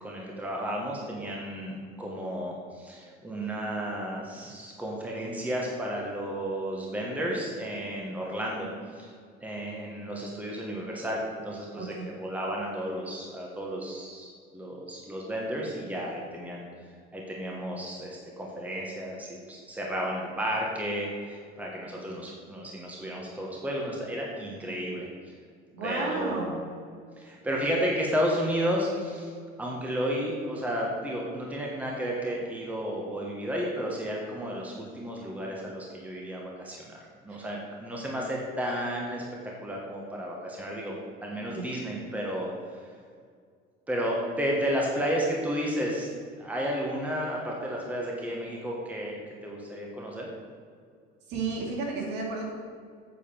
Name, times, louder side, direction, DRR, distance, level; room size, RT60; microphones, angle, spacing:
voice 1, 0.0-9.1 9.4-16.7 17.1-25.1 25.8-26.5 27.2-29.3 29.6-37.0 37.2-39.2 39.6-40.9 41.2-42.9 43.9-46.1 46.4-50.3, equal, 5° right, -2 dB, 1.4 m, -32 dB
voice 2, 11.8-12.1 25.7-26.5 37.3-37.4 41.5-41.6 51.3-52.5, right 3 dB, 60° right, -1 dB, 2.8 m, -32 dB
8.5 x 6.8 x 6.9 m, 2.1 s
cardioid pair, 155°, 20 cm